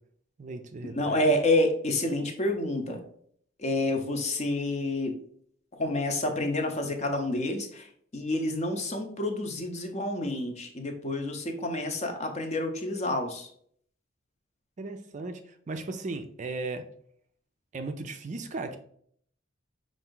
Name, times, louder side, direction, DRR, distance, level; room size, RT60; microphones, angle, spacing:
voice 1, 0.4-1.2 14.8-16.8 17.7-18.8, right 3 dB, 40° right, 6 dB, 0.4 m, -36 dB
voice 2, 0.9-3.0 3.6-5.2 5.7-13.5, left 1 dB, 35° left, 5 dB, 0.7 m, -29 dB
5.5 x 2.6 x 3.8 m, 0.62 s
head